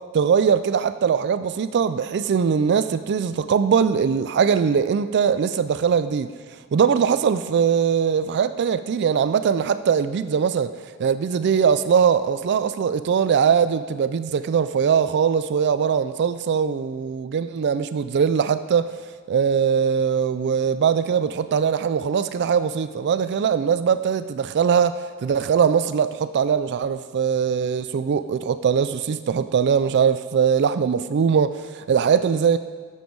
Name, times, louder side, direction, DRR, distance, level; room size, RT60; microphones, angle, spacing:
voice 1, 0.1-6.3 6.7-10.7 11.0-18.9 19.3-24.9 25.2-32.6, right 7 dB, 50° right, 12 dB, 0.3 m, -21 dB
11.5 x 7.2 x 4.6 m, 1.5 s
head